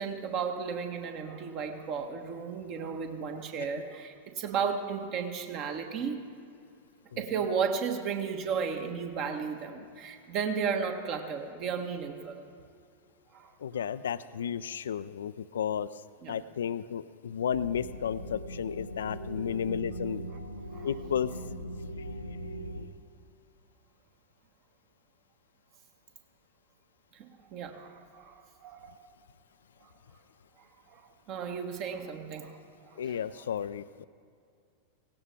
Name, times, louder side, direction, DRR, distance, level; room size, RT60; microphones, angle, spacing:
voice 1, 0.0-6.2 7.2-12.4 13.3-13.5 16.2-16.3 20.7-20.9 27.2-29.0 29.8-29.9 30.9-31.0 31.3-32.9, right 6 dB, 40° right, 6 dB, 1.3 m, -34 dB
voice 2, 7.1-7.4 13.6-16.0 16.3-20.3 20.8-21.3 33.0-34.0, left 8 dB, 65° left, 15 dB, 0.3 m, -33 dB
sound 1, 17.5-22.9, equal, 85° left, 0.8 m, -40 dB
17.5 x 17.0 x 3.4 m, 2.4 s
figure-of-eight pair, 90°, 0 cm